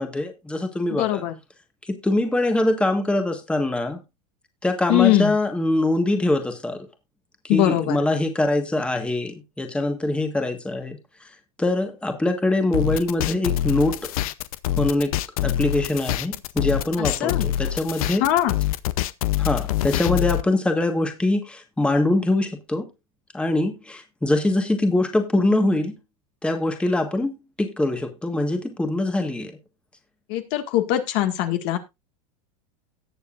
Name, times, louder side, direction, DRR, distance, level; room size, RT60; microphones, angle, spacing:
voice 1, 0.0-1.2 1.8-4.0 4.6-6.9 7.4-11.0 11.6-14.1 14.8-15.1 15.4-18.2 19.4-22.9 23.3-26.0 26.4-29.6, left 2 dB, 5° left, 1.5 m, -23 dB
voice 2, 0.9-1.3 4.9-5.3 7.5-8.0 17.0-17.5 18.2-18.5 30.3-31.8, left 13 dB, 55° left, 1.9 m, -21 dB
sound 1, 12.7-20.4, left 12 dB, 75° left, 0.7 m, -25 dB
18.0 x 7.0 x 2.5 m
supercardioid pair, 120°, 18 cm